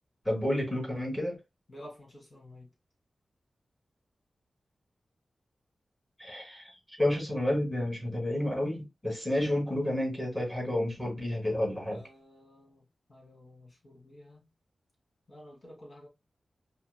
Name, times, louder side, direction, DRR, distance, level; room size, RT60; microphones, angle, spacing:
voice 1, 0.2-1.4 6.2-6.7 7.0-12.0, left 1 dB, 10° left, 2.7 m, -30 dB
voice 2, 1.7-2.7 11.9-12.8 13.1-14.4 15.3-16.1, left 1 dB, 40° left, 2.4 m, -51 dB
5.6 x 2.6 x 2.2 m
wide cardioid pair, 95°, 0 cm